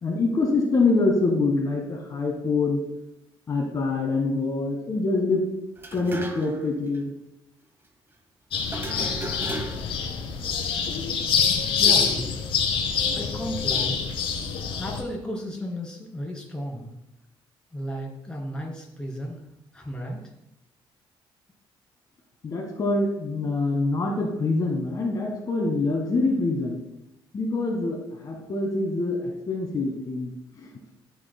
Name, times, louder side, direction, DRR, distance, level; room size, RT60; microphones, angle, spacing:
voice 1, 0.0-2.8 3.5-5.4 5.9-7.1 22.4-26.8 27.3-30.7, left 3 dB, 40° left, -1 dB, 1.5 m, -25 dB
sound 1, 5.8-6.7 6.9-7.0 8.7-10.0, right 2 dB, 25° right, 1.0 m, -36 dB
sound 2, 8.5-15.0, left 6 dB, 75° left, 1.6 m, -25 dB
voice 2, 11.8-12.2 13.1-14.0 14.8-16.9 17.7-19.4 19.7-20.3, equal, 10° left, -2 dB, 2.5 m, -34 dB
12.5 x 6.4 x 2.2 m, 0.82 s
cardioid pair, 110°, 9 cm